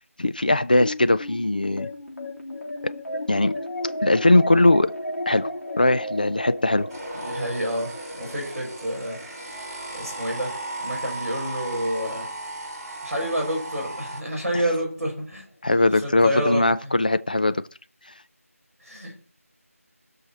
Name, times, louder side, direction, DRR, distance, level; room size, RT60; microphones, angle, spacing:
voice 1, 0.2-1.9 2.8-2.9 3.3-3.5 4.0-4.9 5.3-5.5 5.8-6.9 15.6-17.6, left 2 dB, 35° left, 0.4 m, -20 dB
sound 1, 0.8-13.4, left 1 dB, 85° left, 3.2 m, -35 dB
sound 2, 6.9-14.2, right 2 dB, 15° right, 1.9 m, -36 dB
voice 2, 7.2-7.9 8.2-9.2 9.9-12.3 13.0-15.4 16.0-16.9 18.8-19.1, equal, ahead, 5.2 m, -28 dB
17.5 x 6.5 x 4.2 m
figure-of-eight pair, 175°, 8 cm